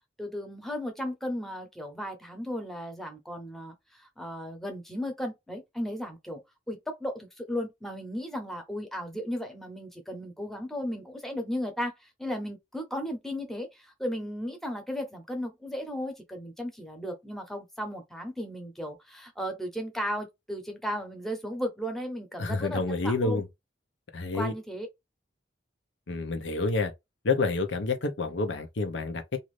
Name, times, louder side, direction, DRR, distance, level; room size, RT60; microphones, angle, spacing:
voice 1, 0.2-6.4 6.7-11.9 12.2-23.4 24.3-24.9, equal, ahead, 0.8 m, -35 dB
voice 2, 22.4-23.5 24.1-24.5 26.1-26.9 27.2-29.4, left 3 dB, 90° left, 0.7 m, -28 dB
2.6 x 2.6 x 3.1 m
head